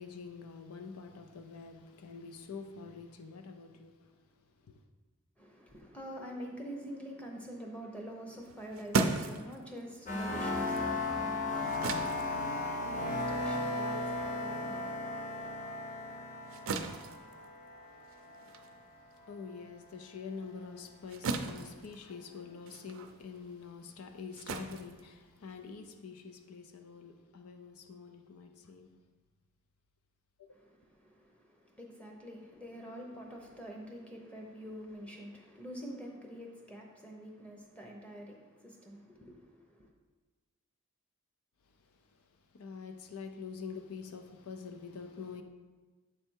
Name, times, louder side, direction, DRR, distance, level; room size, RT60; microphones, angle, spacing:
voice 1, 0.0-4.8 17.9-29.0 30.4-30.5 41.8-45.4, left 5 dB, 80° left, 0.5 m, -47 dB
voice 2, 5.4-15.5 30.5-39.9, equal, 5° left, 0.8 m, -47 dB
sound 1, 8.4-15.2 15.6-25.8, right 4 dB, 65° right, 0.4 m, -39 dB
sound 2, 10.1-18.7, left 2 dB, 35° left, 0.7 m, -36 dB
7.5 x 3.4 x 4.5 m
head